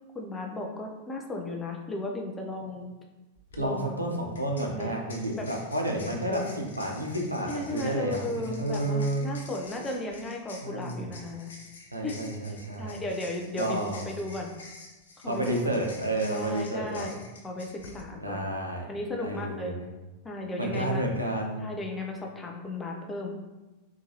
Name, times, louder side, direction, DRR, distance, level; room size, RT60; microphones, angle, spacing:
voice 1, 0.1-2.9 3.6-4.0 4.7-5.0 5.3-5.5 6.3-6.6 7.5-11.5 12.0-12.1 12.8-14.5 15.2-15.8 16.3-17.2 17.4-18.5 18.9-19.8 20.2-21.0 21.6-23.4, left 2 dB, 15° left, 1 dB, 0.6 m, -35 dB
sound 1, 3.4-3.6 4.4-18.0, left 3 dB, 65° left, 0.5 m, -49 dB
voice 2, 3.6-9.2 10.6-11.2 11.9-13.0 13.6-14.1 15.3-17.1 18.2-18.9 19.2-19.8 20.6-21.7, right 1 dB, 85° right, 0 dB, 0.5 m, -30 dB
3.8 x 2.5 x 2.9 m, 1.1 s
figure-of-eight pair, 90°, 0 cm